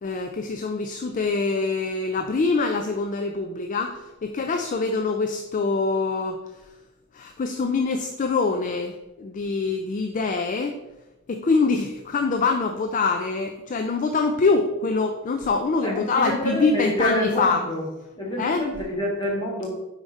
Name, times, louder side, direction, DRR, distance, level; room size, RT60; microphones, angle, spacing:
voice 1, 0.0-6.4 7.1-10.8 11.3-17.6 18.4-18.7, left 4 dB, 40° left, 5 dB, 0.4 m, -24 dB
voice 2, 15.8-17.9 18.1-19.7, equal, 25° left, -4 dB, 1.7 m, -27 dB
4.9 x 4.9 x 4.1 m, 1.0 s
head